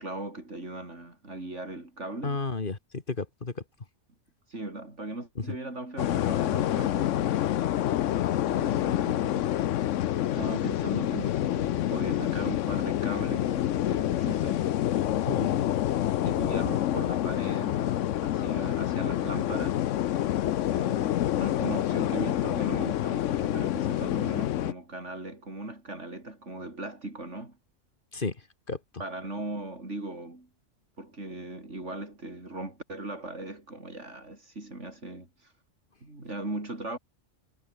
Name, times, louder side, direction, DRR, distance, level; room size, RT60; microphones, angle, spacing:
voice 1, 0.0-2.4 4.5-7.5 8.3-9.6 10.0-14.7 16.2-19.9 20.5-27.6 29.0-30.5 31.0-35.5 36.0-37.0, right 2 dB, 75° right, 5.7 m, -38 dB
voice 2, 2.2-3.6 5.5-5.6 15.2-15.6 28.1-28.3 28.7-28.8, left 3 dB, 45° left, 2.0 m, -32 dB
sound 1, 6.0-24.7, left 12 dB, 85° left, 1.0 m, -27 dB
omnidirectional pair, 1.2 m